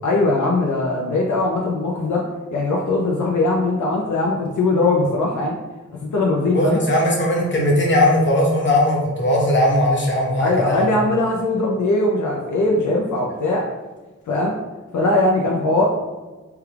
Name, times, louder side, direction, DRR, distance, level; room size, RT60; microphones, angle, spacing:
voice 1, 0.0-2.2 2.5-5.6 6.1-6.8 10.4-13.7 14.3-14.5 14.9-15.8, left 2 dB, 75° left, -2 dB, 0.5 m, -20 dB
voice 2, 6.5-10.9, left 1 dB, 40° left, -2 dB, 0.9 m, -18 dB
3.4 x 2.3 x 3.2 m, 1.2 s
wide cardioid pair, 80°, 30 cm